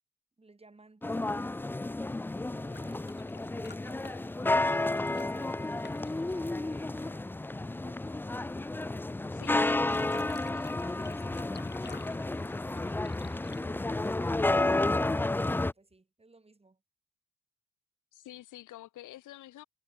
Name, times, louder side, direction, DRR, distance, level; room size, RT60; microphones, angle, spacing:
voice 1, 0.4-1.5 2.3-3.1 3.8-4.4 4.9-8.4 10.1-11.5 12.0-13.2 13.6-16.8, right 3 dB, 20° right, 5.6 m, -59 dB
sound 1, 1.0-15.7, left 2 dB, 5° left, 0.4 m, -31 dB
sound 2, 2.6-7.2 9.6-14.5 15.9-16.0, left 5 dB, 35° left, 2.9 m, -53 dB
voice 2, 9.3-9.8 18.1-19.6, left 14 dB, 80° left, 1.8 m, -48 dB
cardioid pair, 90°, 30 cm